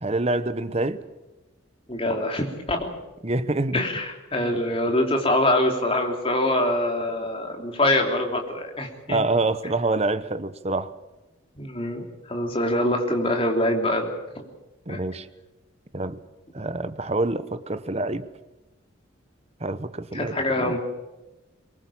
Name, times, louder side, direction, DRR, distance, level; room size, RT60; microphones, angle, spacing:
voice 1, 0.0-1.0 3.2-3.8 9.1-10.9 14.9-15.3 15.9-16.2 16.5-18.3 19.6-20.8, right 2 dB, 30° right, 13 dB, 0.9 m, -26 dB
voice 2, 1.9-2.9 3.7-9.2 11.6-14.1 14.3-14.4 14.9-15.0 20.1-20.8, left 1 dB, 25° left, 3 dB, 3.3 m, -24 dB
23.5 x 21.5 x 7.3 m, 1.1 s
head